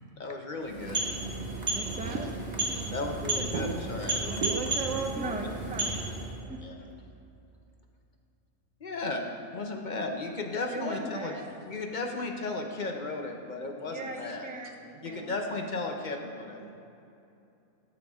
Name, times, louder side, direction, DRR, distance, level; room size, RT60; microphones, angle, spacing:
voice 1, 0.2-1.1 2.9-4.6 6.6-6.8 8.8-11.3 11.6-14.5 15.0-16.7, left 3 dB, 45° left, 0.8 m, -35 dB
sound 1, 0.6-6.4, right 2 dB, 35° right, 1.2 m, -33 dB
voice 2, 1.7-2.3 4.2-4.4 5.2-6.0 6.5-6.6 10.7-11.5 13.9-15.4, right 2 dB, 10° right, 0.4 m, -39 dB
voice 3, 4.1-5.3 9.6-9.7 14.9-15.3 16.6-16.7, right 5 dB, 75° right, 1.1 m, -35 dB
13.0 x 7.0 x 3.6 m
omnidirectional pair, 1.4 m